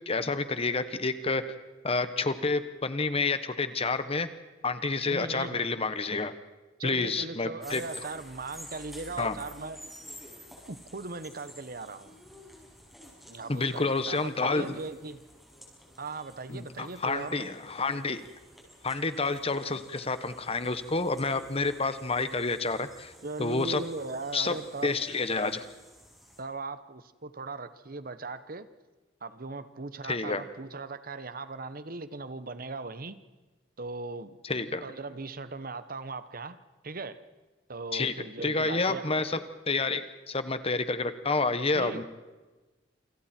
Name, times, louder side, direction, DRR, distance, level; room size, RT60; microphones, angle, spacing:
voice 1, 0.1-1.4 1.8-4.3 4.6-6.3 6.8-7.8 9.2-9.4 13.5-14.8 16.5-18.2 18.8-23.1 23.4-23.8 24.3-24.5 24.8-25.6 30.1-30.4 34.4-34.8 37.9-38.1 38.4-39.4 39.7-42.0, left 3 dB, 35° left, 11 dB, 1.3 m, -29 dB
voice 2, 5.1-5.6 6.8-9.8 10.7-12.2 13.3-15.2 16.0-17.5 23.2-25.0 26.4-28.7 29.2-33.2 33.8-34.4 34.8-36.6 36.8-37.2 37.7-39.0 41.7-42.0, right 3 dB, 50° right, 13 dB, 1.1 m, -38 dB
sound 1, 7.6-26.4, equal, ahead, 6.5 m, -51 dB
28.5 x 26.5 x 4.5 m, 1.2 s
head